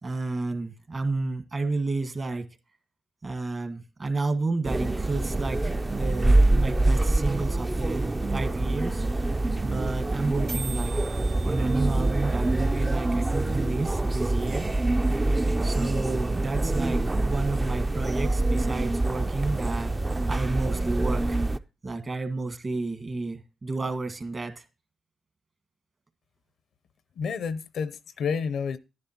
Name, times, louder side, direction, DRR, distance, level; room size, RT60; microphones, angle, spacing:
voice 1, 0.0-2.4 3.2-9.4 9.6-14.6 15.6-19.9 20.3-21.4 21.8-24.6, right 3 dB, 40° right, 1.5 m, -31 dB
sound 1, 4.6-21.6, right 2 dB, 20° right, 0.4 m, -25 dB
sound 2, 10.5-14.5, right 3 dB, 55° right, 1.4 m, -44 dB
voice 2, 27.2-28.8, left 6 dB, 75° left, 0.6 m, -30 dB
10.5 x 10.5 x 2.8 m
cardioid pair, 70°, 0 cm